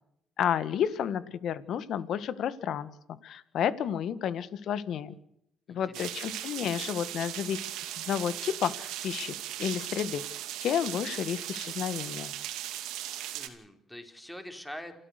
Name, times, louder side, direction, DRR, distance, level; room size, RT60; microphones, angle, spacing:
voice 1, 0.4-2.9 3.2-5.1 5.7-7.7 8.0-10.2 10.6-12.3, left 9 dB, 65° left, 15 dB, 1.6 m, -31 dB
voice 2, 5.7-6.1 13.3-14.9, left 1 dB, 5° left, 5 dB, 4.4 m, -44 dB
sound 1, 5.9-13.5, right 13 dB, 85° right, 2.5 m, -38 dB
29.0 x 14.0 x 6.7 m, 0.75 s
cardioid pair, 90°, 0 cm